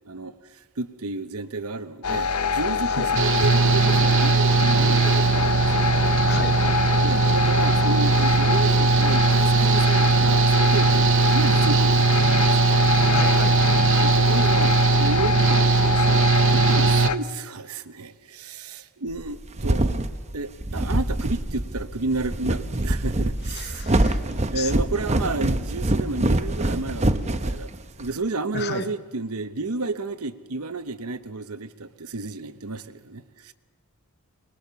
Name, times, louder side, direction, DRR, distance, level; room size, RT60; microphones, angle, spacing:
voice 1, 0.0-0.3 0.8-5.9 7.0-12.6 14.0-20.1 20.3-27.7 28.0-33.5, right 3 dB, 80° right, 1.0 m, -31 dB
sound 1, 2.0-17.2, left 5 dB, 85° left, 0.9 m, -24 dB
Engine / Mechanical fan, 3.1-17.1, right 6 dB, 60° right, 0.7 m, -20 dB
voice 2, 6.3-6.6 13.1-13.8 23.5-24.2 24.5-24.7 26.9-27.0 28.5-28.9, left 5 dB, 45° left, 1.0 m, -33 dB
sound 2, 19.2-28.1, right 1 dB, 30° right, 0.9 m, -25 dB
24.0 x 20.5 x 7.0 m
head